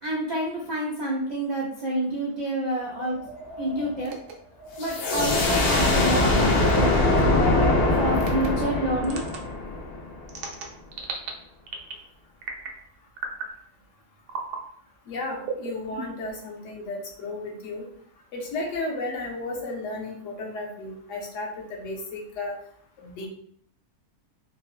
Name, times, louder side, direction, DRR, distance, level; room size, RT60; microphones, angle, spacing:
voice 1, 0.0-3.2 3.6-4.1 4.8-6.9 7.9-9.2, right 1 dB, 75° right, -5 dB, 0.4 m, -28 dB
Wind, 3.0-9.0, left 2 dB, 25° left, 0.3 m, -36 dB
sound 1, 4.0-4.3 5.3-5.6 6.7-7.0 8.2-8.5 9.0-9.4 10.3-11.3 11.7-12.0 12.4-12.8 13.2-13.5 14.3-14.6 15.4-16.3, right 5 dB, 90° right, 1.1 m, -35 dB
sound 2, 4.8-10.3, left 2 dB, 85° left, 1.2 m, -22 dB
voice 2, 15.1-17.8 18.3-22.5 23.0-23.3, left 2 dB, 65° left, 0 dB, 0.9 m, -33 dB
3.7 x 2.0 x 2.4 m, 0.65 s
omnidirectional pair, 1.6 m